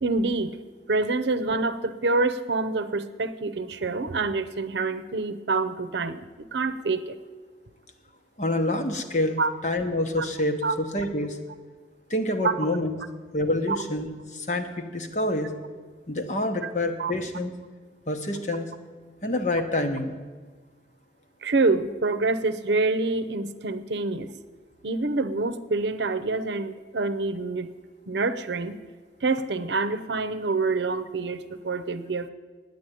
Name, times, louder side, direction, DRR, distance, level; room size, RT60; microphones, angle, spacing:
voice 1, 0.0-0.6 0.9-7.2 9.4-9.5 10.2-10.3 10.6-10.8 12.4-12.5 13.7-13.8 16.6-16.7 17.0-17.1 21.4-24.3 24.8-27.7 28.1-28.8 29.2-32.3, right 3 dB, 80° right, 10 dB, 0.7 m, -26 dB
voice 2, 8.4-11.4 12.1-13.0 13.3-15.5 16.1-17.5 18.1-18.7 19.2-20.2, left 1 dB, 40° left, 6 dB, 1.1 m, -27 dB
9.9 x 9.4 x 9.2 m, 1.4 s
head